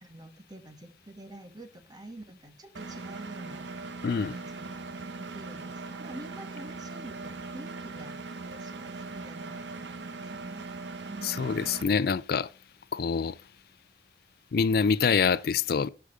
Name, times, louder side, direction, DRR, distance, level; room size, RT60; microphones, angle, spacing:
voice 1, 0.0-3.6 4.3-4.9 5.2-8.2 8.4-10.7 11.1-11.5, right 1 dB, 25° right, 1.6 m, -47 dB
Engine, 2.7-11.8, right 3 dB, 85° right, 0.9 m, -40 dB
voice 2, 4.0-4.3 11.2-12.5 12.9-13.3 14.5-15.9, left 5 dB, 60° left, 0.4 m, -25 dB
11.5 x 5.1 x 5.1 m
head